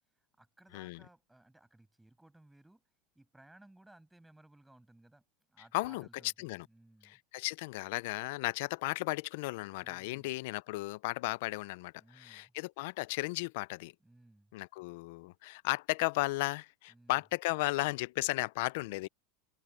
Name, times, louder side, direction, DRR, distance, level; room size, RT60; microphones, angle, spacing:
voice 1, 0.1-7.2 9.8-10.4 12.0-12.5 14.0-14.5 16.9-17.2, right 1 dB, 5° right, 7.9 m, -61 dB
voice 2, 5.7-6.1 6.4-6.6 7.0-13.9 14.5-19.1, left 22 dB, 65° left, 0.4 m, -35 dB
supercardioid pair, 150°, 0 cm